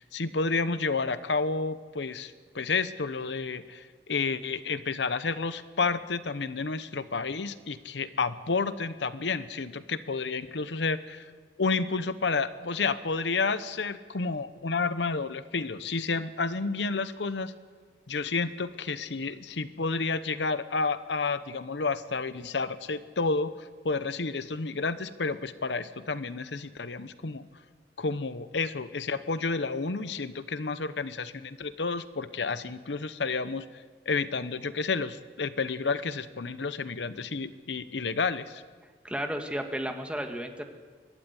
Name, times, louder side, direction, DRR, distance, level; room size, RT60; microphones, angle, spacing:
voice 1, 0.0-3.8 4.1-11.2 11.6-17.5 18.1-27.5 28.0-33.6 34.1-38.6, left 4 dB, 85° left, 13 dB, 0.8 m, -30 dB
voice 2, 39.0-40.6, equal, 5° right, 4 dB, 1.6 m, -33 dB
23.5 x 12.5 x 9.7 m, 1.5 s
head